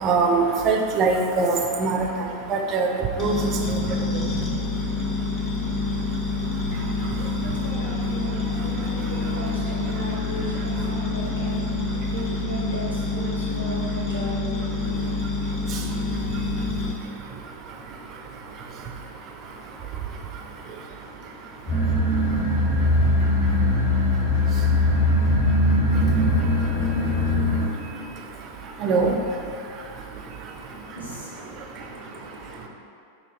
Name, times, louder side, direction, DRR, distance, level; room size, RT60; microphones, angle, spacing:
voice 1, 0.0-2.1 2.5-2.9 3.2-3.4 3.7-3.8 28.8-29.2, right 4 dB, 35° right, 2 dB, 0.4 m, -22 dB
sound 1, 3.2-16.9, left 3 dB, 25° left, 0.7 m, -27 dB
voice 2, 7.1-15.2 30.9-32.7, right 1 dB, 90° left, -8 dB, 0.9 m, -36 dB
sound 2, 21.7-27.7, left 1 dB, 65° left, 1.5 m, -20 dB
2.9 x 2.7 x 4.1 m, 2.4 s
figure-of-eight pair, 90°, 0 cm